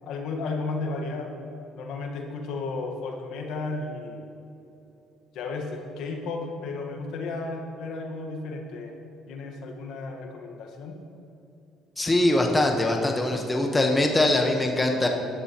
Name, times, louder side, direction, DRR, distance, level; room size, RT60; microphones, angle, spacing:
voice 1, 0.0-1.3 1.7-4.2 5.3-8.9 9.3-11.0, left 3 dB, 75° left, 2 dB, 1.5 m, -33 dB
voice 2, 12.0-15.1, left 1 dB, 15° left, 2 dB, 1.2 m, -22 dB
16.0 x 10.5 x 3.0 m, 2.8 s
cardioid pair, 105°, 0 cm